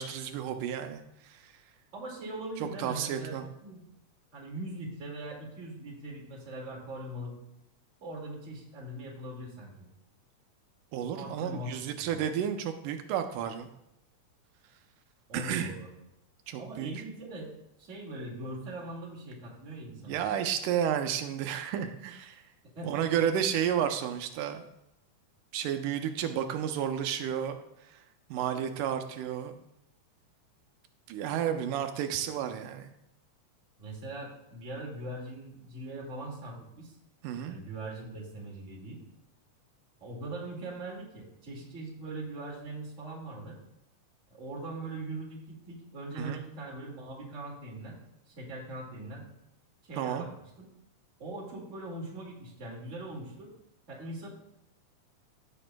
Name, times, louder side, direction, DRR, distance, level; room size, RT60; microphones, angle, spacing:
voice 1, 0.0-1.5 2.6-3.4 10.9-13.7 15.3-15.7 16.5-16.9 20.0-22.4 22.8-24.6 25.5-27.6 27.9-28.0 28.3-29.6 31.1-32.9 37.2-37.6 46.2-46.4 49.9-50.3, right 9 dB, 85° right, 7 dB, 2.2 m, -32 dB
voice 2, 1.9-3.3 3.6-3.8 4.3-7.3 8.0-9.9 11.1-11.7 12.0-12.2 15.3-15.9 16.6-17.5 17.8-20.2 22.6-23.2 33.8-36.9 37.4-39.0 40.0-43.6 44.3-48.0 48.3-49.3 49.9-50.3 50.6-50.7 51.2-53.5 53.9-54.3, right 2 dB, 30° right, -2 dB, 1.8 m, -41 dB
15.0 x 7.0 x 2.2 m, 0.83 s
omnidirectional pair, 3.6 m